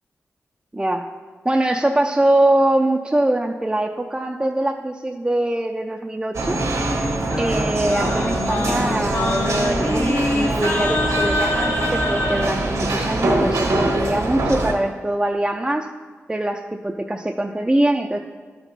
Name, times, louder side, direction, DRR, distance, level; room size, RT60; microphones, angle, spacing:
voice 1, 0.7-1.1 1.4-6.6 7.4-15.9 16.3-18.2, right 1 dB, 15° right, 2 dB, 0.5 m, -22 dB
sound 1, 6.3-14.7, right 2 dB, 75° right, 1.3 m, -23 dB
Singing, 6.5-12.5, left 2 dB, 65° left, 1.2 m, -25 dB
11.5 x 4.5 x 4.1 m, 1.5 s
cardioid pair, 50°, 5 cm